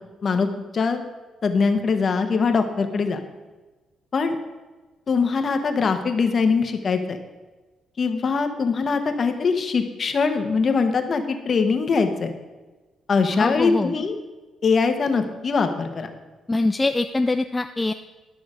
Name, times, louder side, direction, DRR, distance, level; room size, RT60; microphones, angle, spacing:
voice 1, 1.4-3.2 4.1-4.4 5.1-7.2 8.0-12.3 13.1-14.2 14.6-16.1, left 4 dB, 45° left, 6 dB, 1.2 m, -22 dB
voice 2, 13.3-13.9 16.5-17.9, left 2 dB, 15° left, 8 dB, 0.4 m, -23 dB
12.0 x 6.1 x 5.0 m, 1.2 s
cardioid pair, 90°, 0 cm